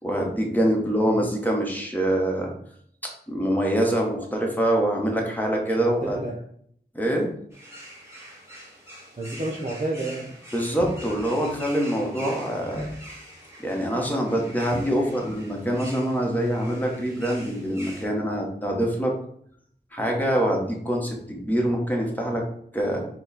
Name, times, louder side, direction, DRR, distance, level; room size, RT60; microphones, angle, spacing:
voice 1, 0.0-2.5 3.0-6.2 6.9-7.3 10.5-12.9 13.6-19.1 19.9-22.4 22.7-23.0, right 1 dB, 10° left, 0 dB, 1.0 m, -25 dB
voice 2, 5.8-6.4 9.2-10.3 14.9-15.1 20.0-20.2, right 2 dB, 40° right, -3 dB, 0.7 m, -31 dB
sound 1, 7.5-18.1, equal, 15° right, 1.6 m, -44 dB
sound 2, 10.8-11.4 12.7-13.1 14.7-15.3 15.6-15.7, equal, 50° left, 0.9 m, -35 dB
4.6 x 2.2 x 4.1 m, 0.65 s
wide cardioid pair, 50°, 19 cm